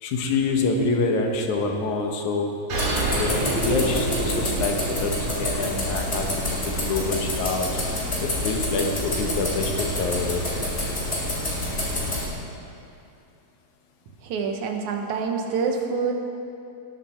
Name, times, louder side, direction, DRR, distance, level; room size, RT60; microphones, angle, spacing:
voice 1, 0.0-2.5 2.9-7.8 8.2-10.4, left 3 dB, 85° left, 3 dB, 2.6 m, -26 dB
sound 1, 2.7-12.2, left 1 dB, 20° left, 3.0 m, -28 dB
sound 2, 2.7-7.8, right 2 dB, 65° right, 3.3 m, -29 dB
voice 2, 14.2-16.1, right 5 dB, 85° right, 3 dB, 2.5 m, -26 dB
18.5 x 8.9 x 4.4 m, 2.6 s
omnidirectional pair, 3.3 m